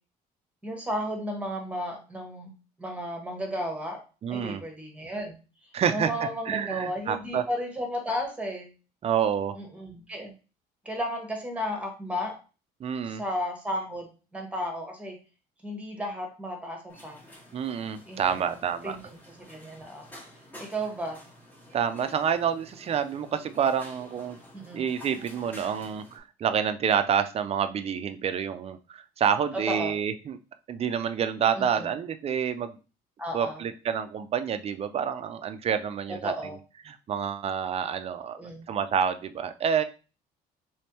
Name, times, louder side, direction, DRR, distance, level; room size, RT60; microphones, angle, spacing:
voice 1, 0.6-2.5 2.8-4.0 4.3-5.4 5.9-8.7 9.6-10.3 10.8-12.4 13.0-14.1 14.3-15.2 15.6-17.2 18.1-18.5 18.8-19.0 19.4-20.1 20.6-21.2 24.5-24.9 29.7-30.0 31.6-31.9 33.2-33.6 36.2-36.6 38.4-38.6, equal, 10° right, 2 dB, 1.3 m, -33 dB
voice 2, 4.2-4.6 5.7-6.1 6.5-7.4 9.0-9.6 12.8-13.2 17.5-19.0 21.7-24.4 24.7-30.4 30.7-32.8 33.3-36.6 36.8-38.4 38.7-39.8, right 7 dB, 35° right, 10 dB, 0.4 m, -28 dB
sound 1, 16.9-26.2, left 1 dB, 10° left, 1.5 m, -50 dB
3.3 x 3.1 x 2.9 m, 0.33 s
cardioid pair, 110°, 17 cm